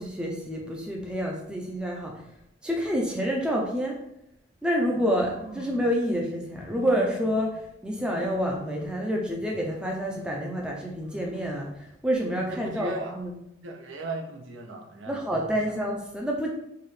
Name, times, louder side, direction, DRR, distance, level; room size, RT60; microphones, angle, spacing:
voice 1, 0.0-2.1 2.6-4.0 4.6-13.3 15.1-16.5, equal, 5° right, -1 dB, 0.4 m, -28 dB
sound 1, 4.8-5.9 6.4-7.5 8.0-9.1 9.5-10.6 11.0-11.7 12.2-13.0, right 1 dB, 80° left, 1.2 m, -45 dB
voice 2, 12.5-13.3 13.6-15.6, right 1 dB, 80° right, 2 dB, 0.7 m, -37 dB
4.6 x 2.4 x 3.2 m, 0.80 s
head